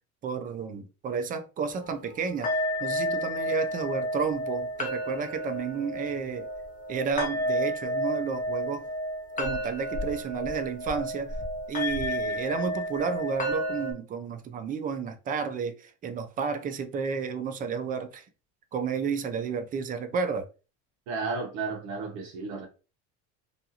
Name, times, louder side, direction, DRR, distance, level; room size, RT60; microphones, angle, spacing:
voice 1, 0.2-2.5 2.8-6.5 6.9-8.8 9.4-11.4 11.7-18.2 18.7-20.5, right 5 dB, 25° right, 0.3 m, -31 dB
sound 1, 1.7-13.9, equal, 20° left, 0.6 m, -31 dB
voice 2, 21.1-22.7, right 4 dB, 60° right, 0.8 m, -33 dB
2.6 x 2.3 x 2.7 m
supercardioid pair, 115°, 38 cm